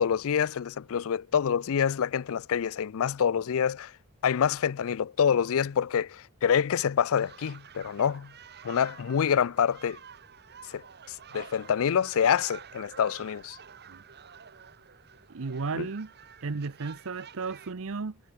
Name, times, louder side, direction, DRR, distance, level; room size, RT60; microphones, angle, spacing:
voice 1, 0.0-3.9 4.2-8.3 8.6-10.0 10.7-13.6 15.7-15.9, left 7 dB, 65° left, 0.4 m, -26 dB
sound 1, 7.1-17.7, right 7 dB, 50° right, 1.6 m, -50 dB
voice 2, 15.3-16.1 16.4-18.2, right 4 dB, 65° right, 0.8 m, -34 dB
head